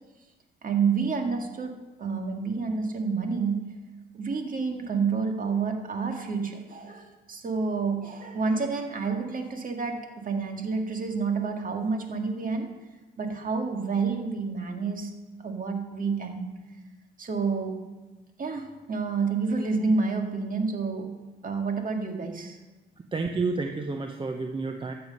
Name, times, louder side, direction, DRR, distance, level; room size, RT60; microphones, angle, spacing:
voice 1, 0.6-3.7 4.1-12.7 13.2-15.1 15.4-16.5 17.2-17.8 18.4-21.1 21.4-22.6, right 4 dB, 45° right, 4 dB, 2.0 m, -29 dB
voice 2, 23.1-24.9, right 3 dB, 25° right, 5 dB, 0.9 m, -30 dB
13.0 x 7.9 x 5.4 m, 1.2 s
cardioid pair, 90°, 20 cm